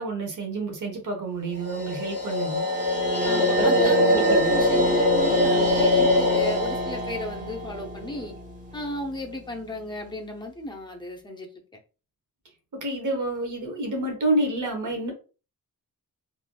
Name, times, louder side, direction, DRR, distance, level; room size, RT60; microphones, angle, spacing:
voice 1, 0.0-2.7 3.5-4.6 12.7-15.1, right 2 dB, 55° right, 2 dB, 0.9 m, -29 dB
sound 1, 1.6-8.8, left 1 dB, 20° right, 0.8 m, -23 dB
voice 2, 3.2-8.3 8.7-11.5, equal, 10° left, 0 dB, 0.6 m, -34 dB
3.3 x 2.4 x 2.2 m, 0.34 s
wide cardioid pair, 165°, 37 cm